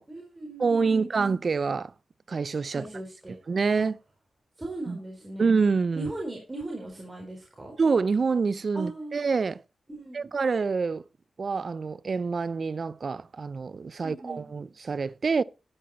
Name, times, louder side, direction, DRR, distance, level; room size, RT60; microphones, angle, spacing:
voice 1, 0.1-1.1 2.7-3.4 3.8-3.9 4.6-5.5 5.9-7.7 8.7-9.1 9.9-10.3 14.0-14.5, right 2 dB, 25° right, 4.1 m, -38 dB
voice 2, 0.6-1.9 2.3-2.9 3.5-4.0 4.9-5.0 5.4-6.1 7.8-9.6 10.1-11.0 11.4-15.4, right 4 dB, 55° right, 0.5 m, -26 dB
12.0 x 9.4 x 4.3 m
cardioid pair, 65°, 0 cm